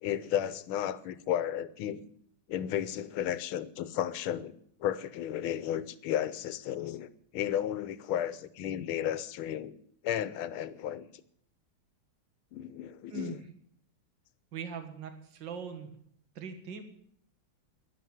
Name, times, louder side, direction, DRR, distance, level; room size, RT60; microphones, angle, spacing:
voice 1, 0.0-2.0 2.5-4.5 4.8-9.8 10.0-11.1 12.5-13.4, left 10 dB, 90° left, 1.7 m, -33 dB
voice 2, 14.5-16.0 16.4-16.8, right 6 dB, 60° right, 2.3 m, -41 dB
12.0 x 11.0 x 9.3 m
omnidirectional pair, 2.2 m